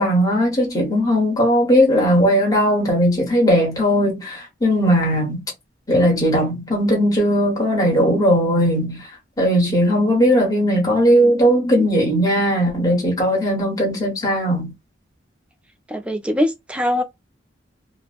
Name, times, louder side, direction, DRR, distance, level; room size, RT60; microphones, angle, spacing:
voice 1, 0.0-5.4 5.9-9.1 9.4-14.7, equal, 20° left, 1.1 m, -18 dB
voice 2, 15.9-17.0, left 1 dB, 5° right, 0.4 m, -22 dB
2.9 x 2.0 x 2.3 m
head